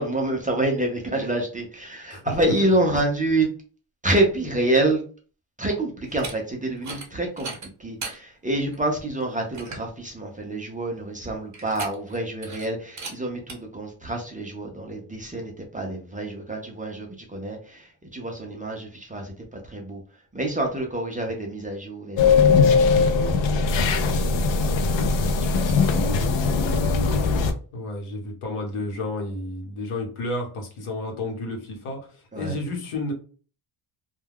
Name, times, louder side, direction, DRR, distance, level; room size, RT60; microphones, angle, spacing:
voice 1, 0.0-3.5 4.0-5.0 5.6-7.5 7.8-20.0 20.3-23.1 24.0-24.2 25.3-26.1 26.5-26.6 32.3-32.6, right 1 dB, 15° right, 1 dB, 0.4 m, -27 dB
sound 1, 6.0-6.3 6.8-7.1 7.4-8.2 8.7-8.8 9.2-9.3 9.5-9.9 11.5-12.2 12.4-12.7 13.0-13.1 13.5-13.6, right 4 dB, 35° right, 0.8 m, -36 dB
sound 2, 22.2-27.5, left 4 dB, 65° left, 0.5 m, -20 dB
voice 2, 27.7-33.1, left 2 dB, 85° left, 2 dB, 1.0 m, -31 dB
2.2 x 2.2 x 3.3 m, 0.39 s
wide cardioid pair, 145°, 48 cm